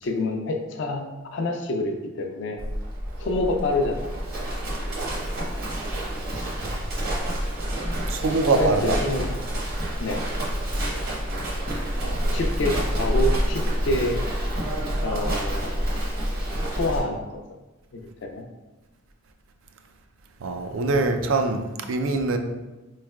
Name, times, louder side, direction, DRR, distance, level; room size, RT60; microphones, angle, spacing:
voice 1, 0.0-1.1 1.3-2.6 3.2-4.2 8.5-9.3 10.0-10.3 12.3-14.2 15.0-15.9 16.7-17.4 17.9-18.4, left 2 dB, 65° left, 3 dB, 0.4 m, -27 dB
Livestock farm animals working animals, 2.6-17.0, equal, 45° right, 0.8 m, -28 dB
voice 2, 8.1-9.0 12.0-12.4 20.4-22.4, right 3 dB, 80° right, 6 dB, 0.4 m, -24 dB
4.2 x 3.2 x 2.3 m, 1.1 s
head